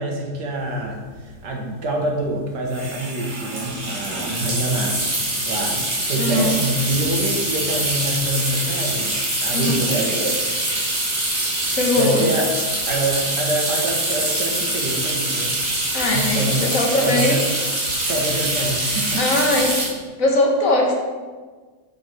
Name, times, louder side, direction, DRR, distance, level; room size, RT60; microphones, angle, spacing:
voice 1, 0.0-5.0 5.5-9.1 9.4-10.4 12.0-12.5 12.9-15.6 16.1-16.7 17.0-17.4 18.1-19.4, right 1 dB, 75° right, 0 dB, 1.9 m, -26 dB
sound 1, 0.8-0.9 1.0-1.3 2.7-19.9, right 1 dB, 25° right, 2.4 m, -24 dB
voice 2, 6.2-6.5 9.5-9.8 11.8-12.3 15.9-17.5 19.2-19.8 20.2-20.9, left 2 dB, 55° left, 0 dB, 1.6 m, -20 dB
7.1 x 7.1 x 4.6 m, 1.4 s
omnidirectional pair, 1.8 m